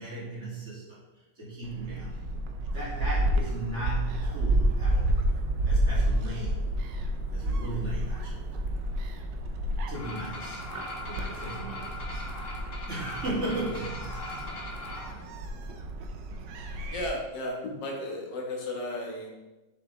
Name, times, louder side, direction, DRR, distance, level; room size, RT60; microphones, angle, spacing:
voice 1, 0.0-2.4 2.7-5.2 5.6-6.6 7.3-8.5 9.9-10.6 11.1-12.3 12.9-14.2 14.7-15.5, right 2 dB, 40° right, -7 dB, 2.8 m, -37 dB
Gull seagull, 1.6-17.1, right 1 dB, 90° right, 1.4 m, -30 dB
sound 1, 9.9-15.1, left 2 dB, 50° left, 1.5 m, -40 dB
voice 2, 16.9-19.3, left 1 dB, 85° left, 0 dB, 2.0 m, -34 dB
6.9 x 6.7 x 3.3 m, 1.1 s
omnidirectional pair, 1.9 m